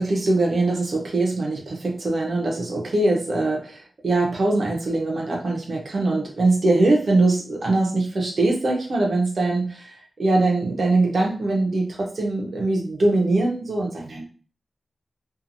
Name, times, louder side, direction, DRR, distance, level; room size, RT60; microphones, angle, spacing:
voice 1, 0.0-14.2, right 2 dB, 50° right, -1 dB, 0.7 m, -22 dB
2.8 x 2.4 x 2.5 m, 0.39 s
wide cardioid pair, 155°, 0 cm